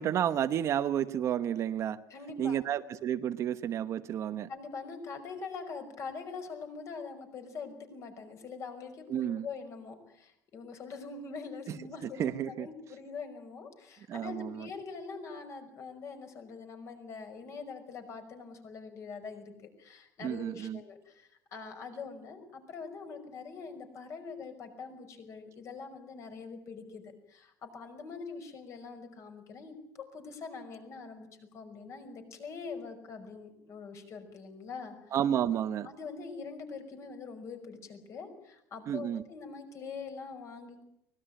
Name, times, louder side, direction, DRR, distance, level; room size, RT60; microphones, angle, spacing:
voice 1, 0.0-2.0 2.4-4.5 9.1-9.5 11.7-12.7 14.1-14.7 20.2-20.8 35.1-35.9 38.9-39.2, right 10 dB, 35° right, 10 dB, 1.0 m, -31 dB
voice 2, 2.1-2.6 4.5-19.5 19.8-35.0 35.8-40.8, left 5 dB, 35° left, 7 dB, 5.5 m, -44 dB
24.5 x 20.0 x 9.1 m, 0.77 s
cardioid pair, 165°, 8 cm